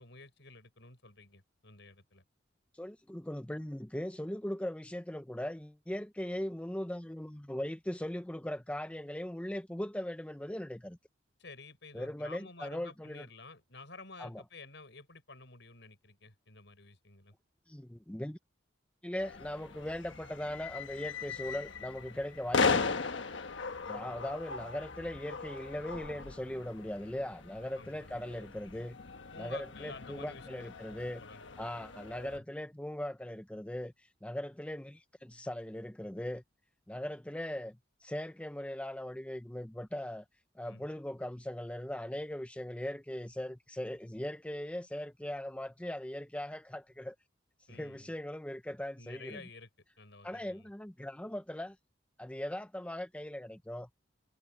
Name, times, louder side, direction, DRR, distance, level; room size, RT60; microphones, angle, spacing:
voice 1, 0.0-2.2 11.4-17.3 23.9-24.2 27.8-28.1 29.3-31.9 32.3-32.4 40.6-40.9 47.7-48.1 49.0-49.7 50.0-50.7, left 3 dB, 70° left, 7.1 m, -51 dB
voice 2, 2.7-11.0 11.9-13.3 14.2-14.4 17.7-18.4 19.0-23.0 23.9-29.0 29.4-31.2 31.6-36.4 36.9-40.2 40.5-47.1 47.7-49.4 50.2-51.8 52.2-53.9, left 1 dB, 5° left, 0.6 m, -39 dB
sound 1, 19.2-32.4, left 4 dB, 85° left, 1.3 m, -38 dB
head